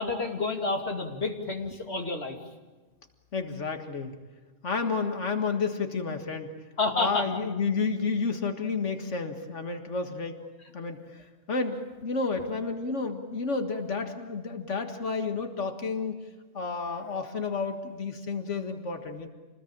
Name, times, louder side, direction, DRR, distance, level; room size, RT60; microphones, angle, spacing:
voice 1, 0.0-2.4 6.8-7.4 16.8-17.1, left 3 dB, 65° left, 3 dB, 2.8 m, -30 dB
voice 2, 3.3-4.1 4.6-6.5 6.9-10.4 10.7-11.2 11.5-16.2 16.5-19.3, left 4 dB, 90° left, 6 dB, 2.1 m, -31 dB
27.0 x 20.5 x 8.8 m, 1.3 s
omnidirectional pair, 1.2 m